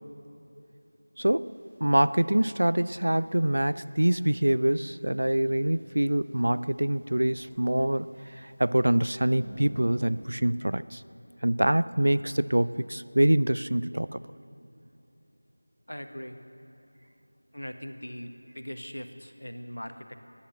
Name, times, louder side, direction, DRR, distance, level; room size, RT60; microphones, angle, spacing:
voice 1, 1.2-1.5 1.8-8.1 8.3-11.0 11.4-14.2, right 1 dB, 55° right, 16 dB, 0.4 m, -25 dB
sound 1, 1.4-10.3, equal, ahead, 1.2 m, -52 dB
voice 2, 15.9-16.4 17.5-20.1, equal, 75° left, 7 dB, 1.3 m, -40 dB
16.5 x 10.0 x 7.5 m, 2.9 s
figure-of-eight pair, 170°, 0 cm